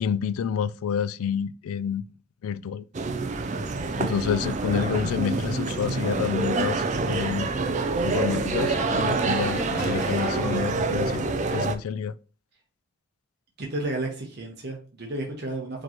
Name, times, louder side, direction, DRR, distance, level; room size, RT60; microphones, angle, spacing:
voice 1, 0.0-2.0 2.4-2.8 3.9-7.5 8.0-12.1, left 7 dB, 85° left, 0.3 m, -29 dB
sound 1, 2.9-11.8, right 3 dB, 35° right, 0.3 m, -27 dB
sound 2, 5.1-10.6, right 2 dB, 15° left, 1.0 m, -38 dB
voice 2, 13.6-15.8, right 2 dB, 50° right, 0.9 m, -32 dB
4.8 x 3.0 x 2.9 m
head